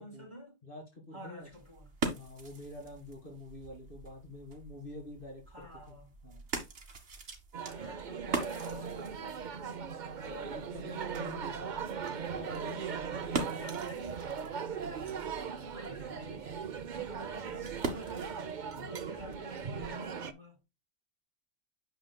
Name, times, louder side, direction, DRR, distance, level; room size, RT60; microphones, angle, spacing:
voice 1, 0.0-0.6 1.1-1.9 5.5-6.1 7.7-9.4 13.1-14.2 14.6-20.6, left 1 dB, 25° right, 4.7 m, -51 dB
voice 2, 0.6-1.5 2.1-6.0 6.2-6.4 10.2-11.8 12.3-13.2 18.8-19.1, left 1 dB, 50° left, 2.8 m, -47 dB
sound 1, 1.4-18.6, right 3 dB, 80° right, 1.8 m, -43 dB
sound 2, 7.5-20.3, right 6 dB, 50° right, 0.8 m, -39 dB
9.4 x 6.4 x 2.2 m
omnidirectional pair, 1.1 m